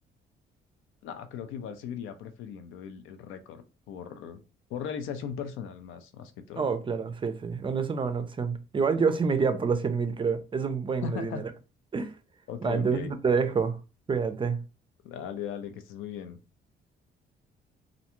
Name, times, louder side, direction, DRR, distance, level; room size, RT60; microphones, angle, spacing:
voice 1, 1.0-4.4 4.7-6.7 11.0-11.5 12.5-13.1 15.0-16.4, left 7 dB, 85° left, 0.4 m, -38 dB
voice 2, 6.6-11.5 11.9-12.1 12.6-13.8 14.1-14.6, right 5 dB, 25° right, 0.4 m, -27 dB
2.5 x 2.2 x 2.9 m
cardioid pair, 90°, 20 cm